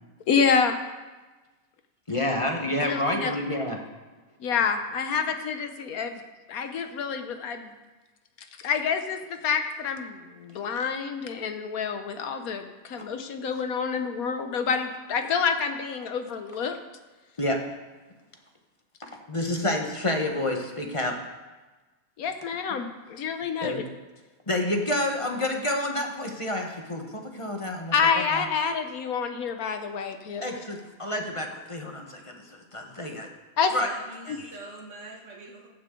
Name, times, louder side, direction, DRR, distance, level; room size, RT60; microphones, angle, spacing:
voice 1, 0.3-0.8 2.8-3.3 4.4-6.2 6.5-7.7 8.6-16.8 22.2-23.7 27.9-30.4 33.6-33.7 34.3-34.4, left 6 dB, 85° left, 7 dB, 1.4 m, -27 dB
voice 2, 2.1-3.8 17.4-17.6 19.3-21.2 23.6-23.8 24.5-27.9 28.3-28.4 30.4-33.3 33.7-33.9 34.2-34.5, left 1 dB, 25° left, 2 dB, 1.2 m, -29 dB
voice 3, 33.8-35.7, right 2 dB, 60° right, -1 dB, 2.0 m, -44 dB
15.0 x 9.6 x 3.8 m, 1.2 s
omnidirectional pair, 1.5 m